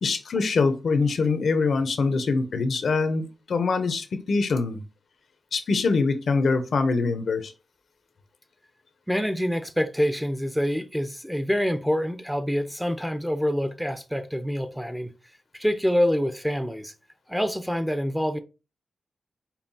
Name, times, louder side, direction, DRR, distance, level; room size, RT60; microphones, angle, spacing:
voice 1, 0.0-4.8 5.5-7.5, left 4 dB, 70° left, 0.6 m, -24 dB
voice 2, 9.1-15.1 15.5-16.9 17.3-18.4, equal, ahead, 0.6 m, -26 dB
5.4 x 2.3 x 2.7 m
cardioid pair, 55°, 0 cm